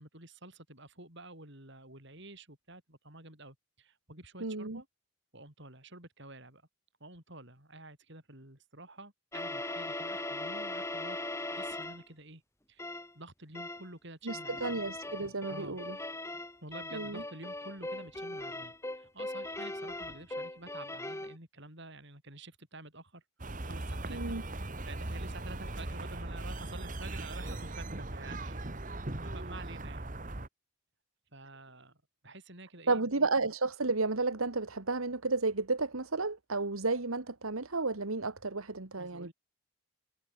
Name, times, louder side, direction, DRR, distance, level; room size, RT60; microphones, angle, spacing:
voice 1, 0.0-4.9 5.3-6.6 7.0-12.4 12.7-12.9 13.1-14.8 15.5-15.8 16.6-23.2 23.5-30.1 31.3-31.9 32.2-33.1 39.0-39.3, right 2 dB, 55° right, 7.4 m, -50 dB
voice 2, 4.4-4.8 14.2-16.0 16.9-17.2 24.1-24.4 32.9-39.3, right 3 dB, 75° right, 1.7 m, -32 dB
sound 1, 9.3-12.1 12.8-13.1 13.6-13.9 14.3-21.4, left 2 dB, 15° left, 2.3 m, -39 dB
sound 2, 23.4-30.5, right 2 dB, 35° right, 1.7 m, -39 dB
head